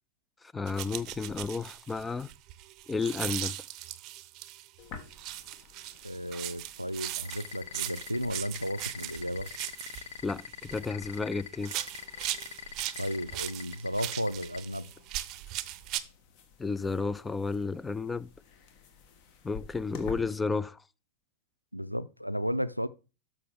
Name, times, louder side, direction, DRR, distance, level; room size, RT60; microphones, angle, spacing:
voice 1, 0.4-2.3 2.9-3.5 10.2-11.8 16.6-18.3 19.4-20.8, left 4 dB, 10° left, 0.4 m, -32 dB
sound 1, 0.7-4.7 5.1-11.2 11.6-16.0, right 15 dB, 40° right, 0.6 m, -39 dB
sound 2, 4.8-20.2, left 6 dB, 45° left, 1.4 m, -52 dB
voice 2, 6.0-9.5 13.0-14.9 21.7-22.9, equal, 90° right, 0.4 m, -34 dB
sound 3, 7.3-14.6, left 8 dB, 60° left, 0.8 m, -42 dB
12.5 x 5.9 x 3.5 m
figure-of-eight pair, 90°, 0 cm